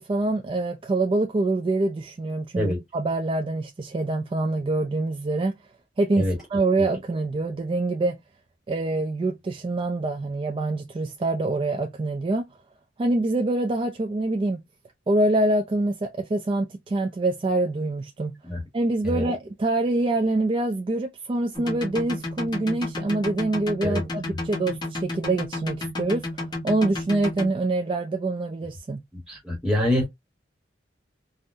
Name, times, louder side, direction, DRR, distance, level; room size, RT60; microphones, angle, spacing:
voice 1, 0.0-5.5 6.0-8.2 8.7-12.5 13.0-14.6 15.1-18.3 18.7-26.3 26.6-29.0, right 2 dB, 30° right, 0.3 m, -25 dB
sound 1, 21.5-27.5, left 2 dB, 25° left, 0.9 m, -31 dB
voice 2, 29.3-30.1, left 1 dB, 5° right, 1.1 m, -24 dB
3.5 x 2.1 x 2.5 m
head